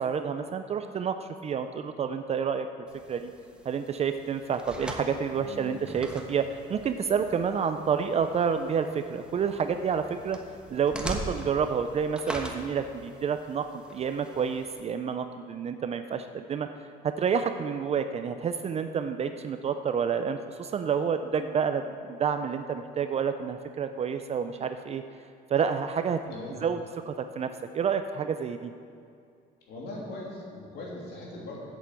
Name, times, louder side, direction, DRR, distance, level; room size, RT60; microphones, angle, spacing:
voice 1, 0.0-2.7 3.1-3.3 3.6-10.4 10.7-16.7 17.0-25.0 25.5-26.2 26.6-26.8 27.1-28.7, right 6 dB, 40° right, 8 dB, 0.5 m, -29 dB
sound 1, 2.9-14.8, right 1 dB, 5° right, 1.2 m, -42 dB
voice 2, 5.3-5.8 26.3-26.6 29.7-31.6, left 2 dB, 70° left, -4 dB, 3.1 m, -40 dB
8.3 x 8.0 x 7.6 m, 2.4 s
cardioid pair, 110°, 17 cm